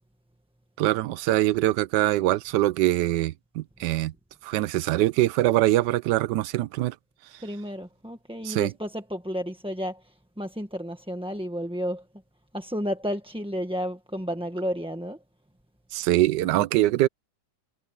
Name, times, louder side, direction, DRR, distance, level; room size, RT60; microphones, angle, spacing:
voice 1, 0.8-4.1 4.4-6.9 8.4-8.7 15.9-17.1, right 15 dB, 80° right, 1.2 m, -23 dB
voice 2, 7.4-12.0 12.5-15.2, equal, 5° right, 1.2 m, -32 dB
omnidirectional pair, 1.9 m